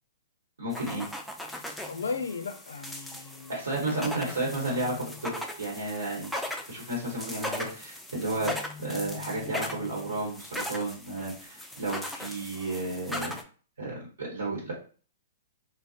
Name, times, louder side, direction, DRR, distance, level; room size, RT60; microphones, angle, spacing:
voice 1, 0.6-1.0 3.5-13.4 13.8-14.7, right 2 dB, 85° right, 1.0 m, -33 dB
sound 1, 0.7-13.4, left 1 dB, ahead, 0.3 m, -39 dB
voice 2, 1.9-3.6 3.9-4.5, left 4 dB, 80° left, 0.4 m, -36 dB
2.5 x 2.0 x 2.4 m
hypercardioid pair, 125°, 0 cm